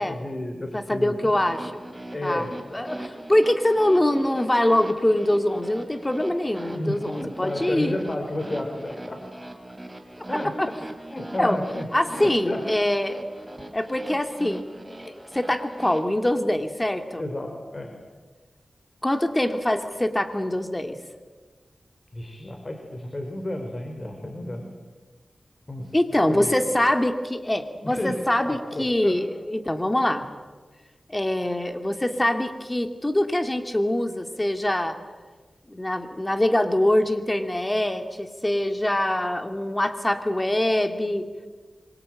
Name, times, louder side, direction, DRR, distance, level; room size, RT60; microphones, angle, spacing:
voice 1, 0.0-1.3 2.1-2.5 6.7-9.2 10.3-10.5 11.1-11.9 12.1-12.6 17.2-17.9 22.1-24.7 25.7-26.0 26.3-26.5 27.8-28.2 28.4-29.2, left 1 dB, 35° left, 4 dB, 4.2 m, -31 dB
voice 2, 0.7-1.8 2.2-8.0 10.6-10.7 11.4-11.6 11.9-13.2 13.7-14.6 15.0-17.2 19.0-21.0 25.9-30.3 31.1-35.0 35.7-41.3, left 1 dB, 15° left, 7 dB, 2.5 m, -24 dB
sound 1, 1.3-16.0, right 1 dB, 15° right, 4.5 m, -40 dB
25.5 x 24.0 x 9.0 m, 1.4 s
wide cardioid pair, 75°, 0 cm